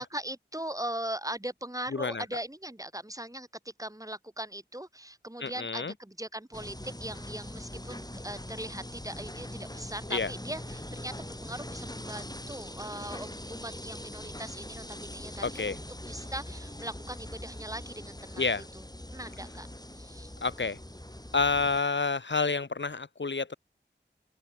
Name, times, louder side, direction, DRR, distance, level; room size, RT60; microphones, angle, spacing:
voice 1, 0.0-18.6 19.1-19.7 19.9-20.3, right 1 dB, 15° right, 2.9 m, -40 dB
voice 2, 1.9-2.2 5.4-5.9 10.1-10.3 15.4-15.8 18.4-18.6 20.4-20.8 21.3-23.6, left 4 dB, 70° left, 1.1 m, -29 dB
sound 1, 6.5-21.8, left 1 dB, 20° left, 7.5 m, -42 dB
open air
wide cardioid pair, 50°, 19 cm